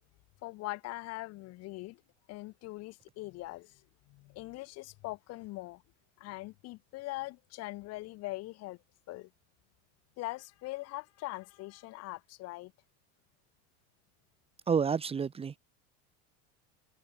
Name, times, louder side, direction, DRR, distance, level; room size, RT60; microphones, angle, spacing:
voice 1, 0.4-2.0 2.3-3.8 4.1-5.8 6.2-8.8 9.1-9.3 10.2-12.7, left 20 dB, 40° left, 7.6 m, -42 dB
voice 2, 14.7-15.6, right 6 dB, 15° right, 2.7 m, -29 dB
supercardioid pair, 160°, 37 cm